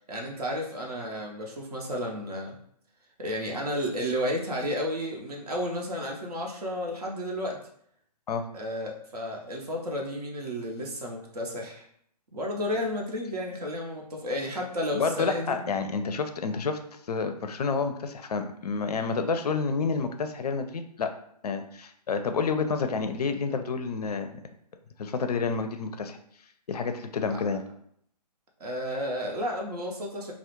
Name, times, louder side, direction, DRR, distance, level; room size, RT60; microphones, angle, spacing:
voice 1, 0.1-2.6 3.2-7.6 8.5-11.8 12.3-15.6 27.3-27.6 28.6-30.3, equal, 65° right, 0 dB, 0.7 m, -32 dB
voice 2, 14.9-16.8 17.1-21.1 21.4-24.4 25.0-26.2 26.7-27.6, left 5 dB, 65° left, 7 dB, 0.4 m, -29 dB
2.3 x 2.0 x 2.9 m, 0.68 s
figure-of-eight pair, 140°, 21 cm